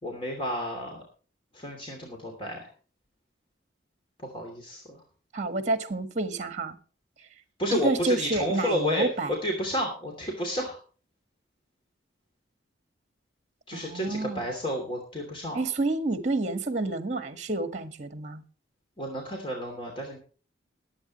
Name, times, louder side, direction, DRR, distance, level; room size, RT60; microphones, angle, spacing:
voice 1, 0.0-1.0 1.5-2.7 4.2-5.0 7.6-9.1 9.4-10.8 13.7-15.6 19.0-20.2, equal, 25° left, 2.8 m, -31 dB
voice 2, 5.3-6.8 7.7-9.3 13.7-14.5 15.5-18.4, right 2 dB, 40° right, 1.5 m, -29 dB
22.0 x 8.6 x 3.1 m
head